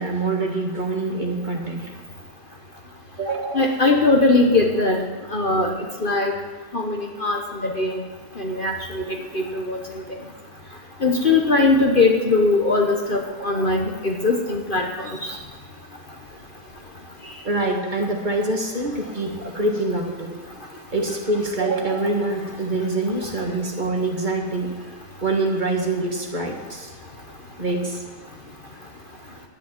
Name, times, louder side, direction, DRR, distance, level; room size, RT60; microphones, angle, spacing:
voice 1, 0.0-1.9 3.2-3.9 13.4-13.7 17.4-20.3 20.9-24.7 25.2-26.9 27.6-28.0, right 2 dB, 30° right, 1 dB, 1.9 m, -25 dB
voice 2, 3.5-5.0 5.3-5.7 6.0-6.3 6.7-8.0 8.4-9.0 9.3-9.8 11.0-14.8, left 3 dB, 40° left, 1 dB, 1.2 m, -20 dB
10.5 x 10.0 x 7.4 m, 1.4 s
omnidirectional pair, 1.5 m